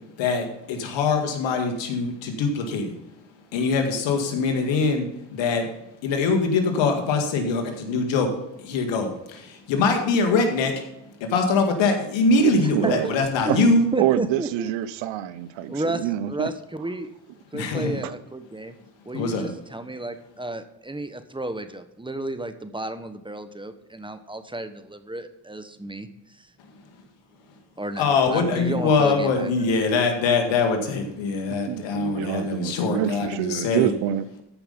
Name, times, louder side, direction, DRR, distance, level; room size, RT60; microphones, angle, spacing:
voice 1, 0.2-2.9 3.5-5.1 5.3-5.7 6.0-8.3 8.6-10.8 11.2-13.9 17.5-18.0 19.1-19.5 28.0-33.9, left 4 dB, 80° left, 4 dB, 2.0 m, -23 dB
voice 2, 12.7-13.1 13.5-13.7 14.0-16.5 18.0-18.2 31.5-34.4, right 13 dB, 80° right, 15 dB, 0.8 m, -26 dB
voice 3, 13.9-14.7 15.7-17.1 17.5-18.8 19.0-26.1 26.4-26.5 27.8-29.7, right 2 dB, 10° right, 10 dB, 1.2 m, -32 dB
14.0 x 5.6 x 5.4 m, 0.89 s
supercardioid pair, 65°, 44 cm